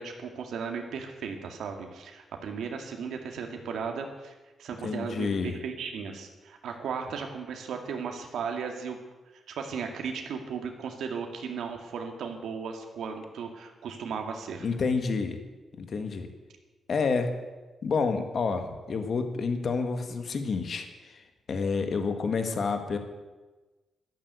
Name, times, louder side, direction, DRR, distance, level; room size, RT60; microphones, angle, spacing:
voice 1, 0.0-9.0 9.3-14.7, right 6 dB, 90° right, 3 dB, 2.0 m, -36 dB
voice 2, 4.8-5.5 14.6-15.4 15.7-16.3 16.9-17.3 17.8-21.2 21.5-23.0, left 4 dB, 50° left, 6 dB, 1.7 m, -29 dB
12.5 x 12.0 x 8.1 m, 1.2 s
wide cardioid pair, 140°, 0 cm